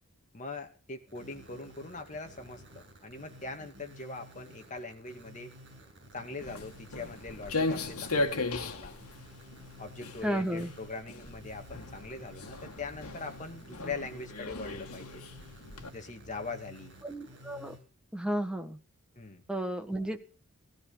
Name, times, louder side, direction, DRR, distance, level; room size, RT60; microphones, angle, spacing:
voice 1, 0.3-5.5 6.1-9.0 9.8-15.3 15.9-17.0 19.2-19.4, left 3 dB, 35° left, 4 dB, 2.3 m, -42 dB
sound 1, 1.1-17.8, equal, 55° right, 7.8 m, -53 dB
Walk footsteps, 6.4-15.9, left 2 dB, 75° left, 2.0 m, -37 dB
voice 2, 10.2-10.7 17.0-17.7 18.1-18.8 19.5-20.2, right 1 dB, 5° right, 5 dB, 1.6 m, -33 dB
17.5 x 12.0 x 5.7 m, 0.37 s
head